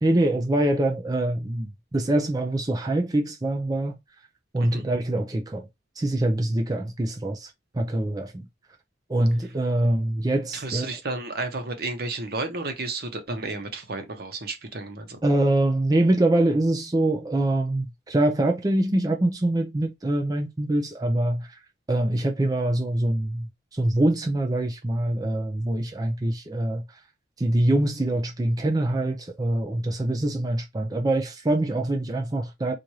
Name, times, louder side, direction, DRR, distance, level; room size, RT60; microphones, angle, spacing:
voice 1, 0.0-4.0 4.5-5.7 6.0-8.4 9.1-10.9 15.2-21.5 21.9-23.5 23.7-26.8 27.4-32.7, right 1 dB, 20° right, 0.5 m, -24 dB
voice 2, 10.5-15.2, right 3 dB, 60° right, 1.0 m, -32 dB
4.6 x 2.6 x 2.8 m
head